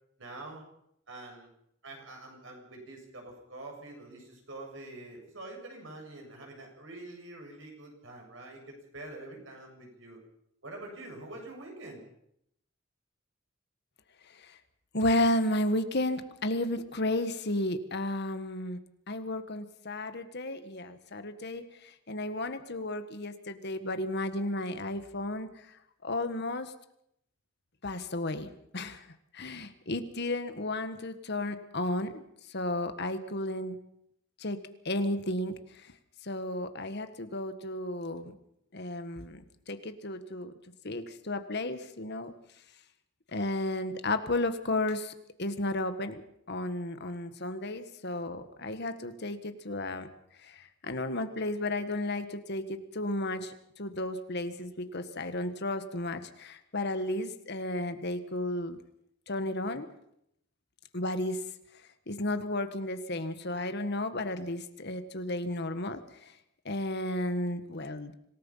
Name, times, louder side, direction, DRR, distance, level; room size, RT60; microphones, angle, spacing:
voice 1, 0.2-0.6 1.1-1.5 1.8-10.2 10.6-12.0, right 2 dB, 65° right, 1 dB, 7.2 m, -45 dB
voice 2, 14.9-18.8 19.1-25.5 26.0-26.7 27.8-29.0 29.3-32.2 32.5-33.8 34.4-34.6 34.8-35.5 36.2-38.3 38.7-39.4 39.7-40.5 40.8-42.3 43.3-45.1 45.4-46.2 46.5-50.1 50.4-53.5 53.8-58.8 59.3-59.9 60.9-61.4 62.1-66.3 66.6-68.1, left 1 dB, 55° left, 9 dB, 1.6 m, -33 dB
26.5 x 18.0 x 5.7 m, 0.75 s
head